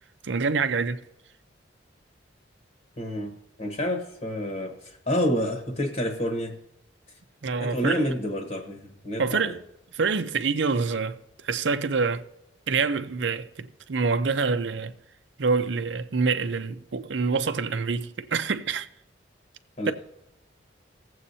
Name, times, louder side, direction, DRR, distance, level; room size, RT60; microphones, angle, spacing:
voice 1, 0.2-1.0 7.4-8.1 9.2-9.6 9.9-11.2 11.4-12.3 12.7-14.9 15.4-18.9 19.9-20.0, right 4 dB, 70° right, 0.6 m, -26 dB
voice 2, 3.0-6.6 7.6-9.6 19.8-19.9, equal, 40° left, 1.2 m, -29 dB
18.5 x 7.8 x 2.8 m
head